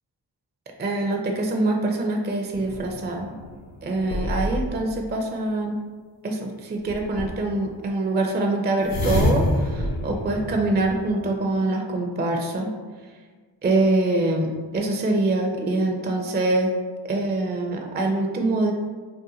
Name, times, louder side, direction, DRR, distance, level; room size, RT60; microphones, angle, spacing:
voice 1, 0.8-3.4 3.8-5.8 6.2-12.7 13.6-14.5 14.7-16.7 17.0-18.7, right 2 dB, 20° right, 2 dB, 0.4 m, -24 dB
sound 1, 2.5-4.9 6.9-7.6 8.8-11.3, left 1 dB, 85° left, 0.6 m, -27 dB
2.7 x 2.1 x 3.8 m, 1.5 s
cardioid pair, 50°, 49 cm